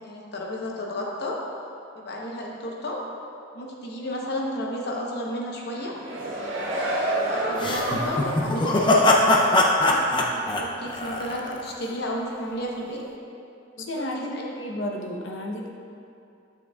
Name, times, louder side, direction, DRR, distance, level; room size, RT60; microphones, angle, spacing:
voice 1, 0.0-1.4 1.9-3.0 3.5-5.9 7.0-10.0 10.3-13.0 13.8-14.6, left 1 dB, 60° left, -1 dB, 0.9 m, -32 dB
sound 1, 5.8-8.5 8.9-9.0, right 1 dB, 80° right, 1.5 m, -28 dB
sound 2, 7.6-11.7, left 2 dB, 25° left, 0.5 m, -21 dB
voice 2, 13.8-15.7, left 1 dB, 85° left, 0 dB, 0.8 m, -32 dB
8.7 x 6.8 x 2.3 m, 2.6 s
head